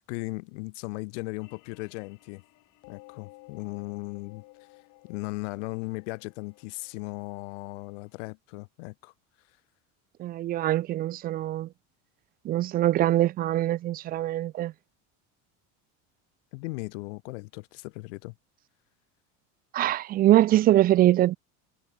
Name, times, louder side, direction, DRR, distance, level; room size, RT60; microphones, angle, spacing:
voice 1, 0.0-2.4 2.9-4.4 5.1-9.1 16.5-18.3, left 27 dB, 80° left, 1.6 m, -37 dB
sound 1, 1.4-8.3, left 23 dB, 55° left, 5.3 m, -55 dB
voice 2, 10.2-11.7 12.5-14.7 19.7-21.4, right 14 dB, 25° right, 0.3 m, -23 dB
cardioid pair, 155°, 36 cm